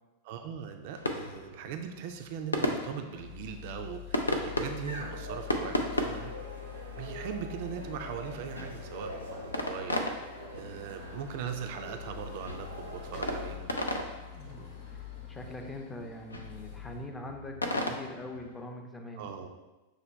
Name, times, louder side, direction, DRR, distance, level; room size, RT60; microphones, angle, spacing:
voice 1, 0.2-6.3 6.9-10.0 10.5-13.7 14.6-14.7 19.2-19.5, right 7 dB, 50° right, 6 dB, 0.4 m, -40 dB
sound 1, 0.9-18.6, left 1 dB, 80° left, 0.4 m, -37 dB
sound 2, 3.2-17.1, left 11 dB, 55° left, 0.8 m, -46 dB
sound 3, 4.8-13.6, right 1 dB, 85° right, 0.7 m, -45 dB
voice 2, 14.3-19.3, left 1 dB, 15° left, 3 dB, 0.5 m, -43 dB
6.4 x 2.1 x 3.3 m, 1.1 s
figure-of-eight pair, 90°, 0 cm